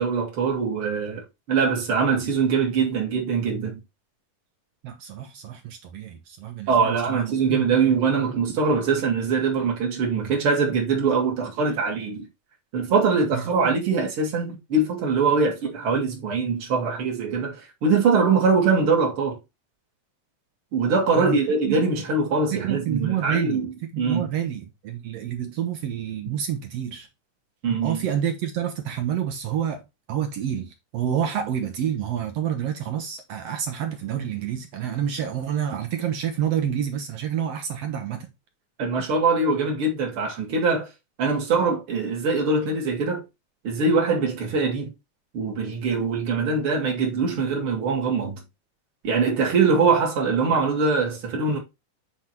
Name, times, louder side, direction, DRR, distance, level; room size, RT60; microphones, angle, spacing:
voice 1, 0.0-3.8 6.7-12.2 12.7-19.4 20.7-24.3 27.6-28.0 38.8-40.9 41.2-43.2 43.6-44.9 45.3-48.4 49.0-51.6, right 4 dB, 45° right, 2.6 m, -23 dB
voice 2, 4.8-7.7 13.3-13.7 21.2-21.4 21.7-21.8 22.5-27.1 27.8-29.8 30.1-38.3, right 9 dB, 70° right, 1.6 m, -28 dB
7.9 x 3.6 x 4.3 m
omnidirectional pair, 3.8 m